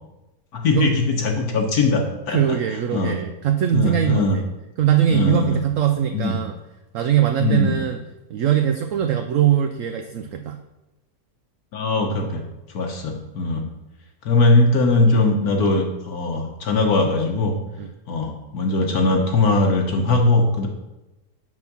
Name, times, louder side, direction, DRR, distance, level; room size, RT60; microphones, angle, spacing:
voice 1, 0.5-2.6 2.9-3.2 3.7-4.4 5.1-5.6 6.1-6.4 7.4-7.8 11.7-12.4 12.7-13.6 14.2-17.5 18.1-20.7, left 2 dB, 65° left, 2 dB, 1.4 m, -20 dB
voice 2, 2.3-4.4 4.8-6.5 6.9-8.0 8.3-10.6 17.8-17.9, right 10 dB, 70° right, 5 dB, 0.8 m, -21 dB
6.3 x 5.7 x 5.9 m, 1.0 s
omnidirectional pair, 1.7 m